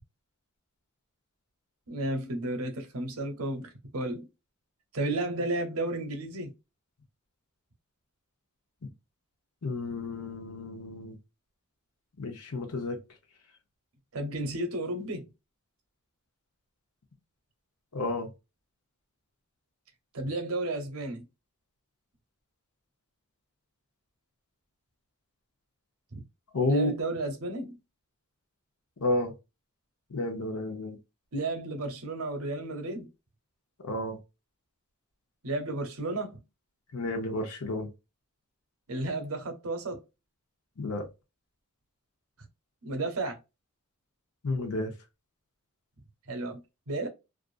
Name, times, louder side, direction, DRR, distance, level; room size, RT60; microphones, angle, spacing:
voice 1, 1.9-4.3 4.9-6.5 14.1-15.3 20.1-21.3 26.1-26.2 26.7-27.8 31.3-33.1 35.4-36.4 38.9-40.0 42.8-43.4 46.3-47.1, right 2 dB, 70° right, 0.8 m, -33 dB
voice 2, 9.6-11.2 12.2-13.0 17.9-18.3 26.5-26.9 29.0-29.3 30.1-31.0 33.8-34.2 36.9-37.9 40.8-41.1 44.4-44.9, left 2 dB, 85° left, 0.8 m, -31 dB
2.5 x 2.4 x 2.4 m
head